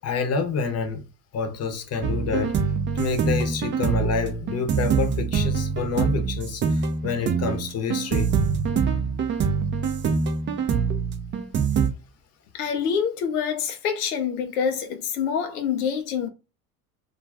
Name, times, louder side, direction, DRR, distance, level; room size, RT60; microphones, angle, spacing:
voice 1, 0.0-1.0 1.3-2.6 2.9-8.3, left 5 dB, 35° left, 0.8 m, -28 dB
sound 1, 2.0-11.9, right 6 dB, 25° right, 0.4 m, -24 dB
voice 2, 12.5-16.3, left 7 dB, 90° left, 0.6 m, -26 dB
2.4 x 2.2 x 3.3 m
hypercardioid pair, 80°, 44 cm